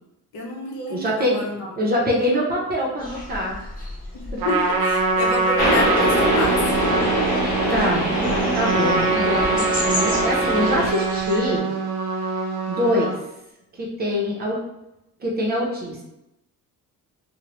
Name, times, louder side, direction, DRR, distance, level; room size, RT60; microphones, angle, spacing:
voice 1, 0.3-1.7 4.2-6.8, left 2 dB, 80° left, 0 dB, 0.8 m, -28 dB
voice 2, 0.9-1.4 1.8-3.7 7.7-11.7 12.7-13.1 13.8-14.6 15.2-16.0, left 1 dB, 25° right, -2 dB, 0.5 m, -24 dB
sound 1, 3.0-11.6, left 1 dB, 25° left, 0.6 m, -35 dB
Trumpet, 4.4-13.2, right 4 dB, 85° right, 0.6 m, -24 dB
sound 2, 5.6-10.9, equal, 50° left, 1.1 m, -23 dB
2.9 x 2.0 x 2.9 m, 0.90 s
cardioid pair, 170°, 36 cm